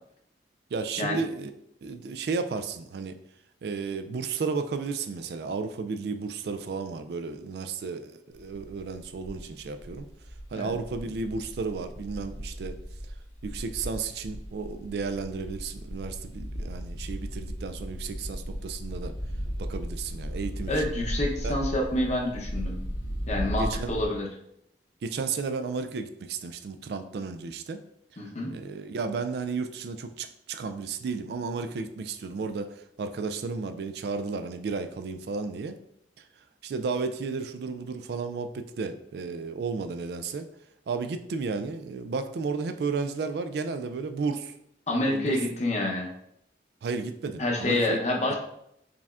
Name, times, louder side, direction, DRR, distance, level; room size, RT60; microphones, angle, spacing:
voice 1, 0.7-1.5 1.8-3.1 3.6-10.1 10.5-12.8 13.4-19.1 19.6-20.7 21.4-21.5 23.6-23.9 25.0-27.8 28.5-35.8 36.6-40.5 40.9-44.6 45.1-45.4 46.8-48.0 48.3-48.4, right 4 dB, 60° right, 9 dB, 0.3 m, -33 dB
sound 1, 8.4-24.1, equal, 70° left, 1.2 m, -36 dB
voice 2, 20.7-22.8 23.3-24.3 28.2-28.5 44.9-46.1 47.4-48.4, left 1 dB, 40° left, 0 dB, 0.7 m, -27 dB
4.9 x 3.5 x 2.4 m, 0.75 s
head